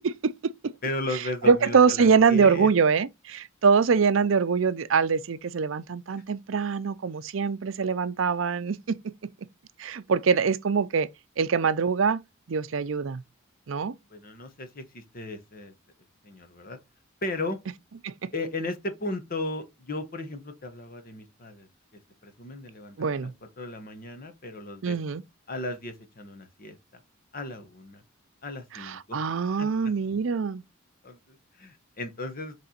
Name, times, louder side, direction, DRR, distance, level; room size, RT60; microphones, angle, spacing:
voice 1, 0.0-0.7 1.4-9.1 9.8-11.1 11.4-12.2 12.5-13.2 13.7-13.9 18.0-18.1 23.0-23.3 24.8-25.2 28.7-30.6, right 5 dB, 65° right, 0.5 m, -24 dB
voice 2, 0.8-2.7 14.1-15.7 16.2-16.8 17.2-17.6 18.3-21.7 22.2-23.3 23.6-25.0 25.5-26.8 27.3-28.0 28.4-29.2 29.6-29.7 31.0-32.5, left 2 dB, 45° left, 1.2 m, -35 dB
6.5 x 3.4 x 4.3 m
head